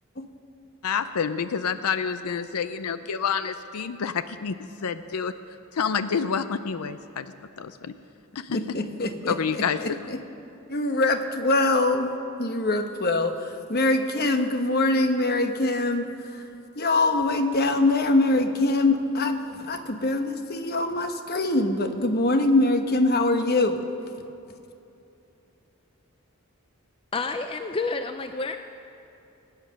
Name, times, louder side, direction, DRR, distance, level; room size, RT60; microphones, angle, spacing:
voice 1, 0.8-5.3 5.7-7.9 8.4-8.6 9.2-9.8, left 6 dB, 80° left, 12 dB, 0.5 m, -28 dB
voice 2, 8.5-10.2 10.7-12.1 12.4-16.4 16.8-23.8, left 2 dB, 45° left, 7 dB, 1.0 m, -23 dB
voice 3, 27.1-28.6, left 3 dB, 25° left, 7 dB, 0.4 m, -29 dB
21.0 x 9.1 x 6.4 m, 2.8 s
head